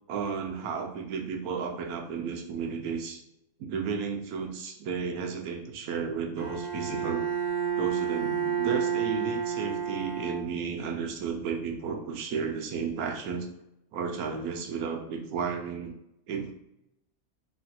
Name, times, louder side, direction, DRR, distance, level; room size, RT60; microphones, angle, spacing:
voice 1, 0.1-3.2 3.6-7.2 7.8-13.5 13.9-15.9 16.3-16.5, right 6 dB, 85° right, 3 dB, 1.0 m, -33 dB
Bowed string instrument, 6.4-10.9, right 8 dB, 10° left, 0.3 m, -30 dB
3.1 x 2.4 x 2.7 m, 0.85 s
omnidirectional pair, 1.5 m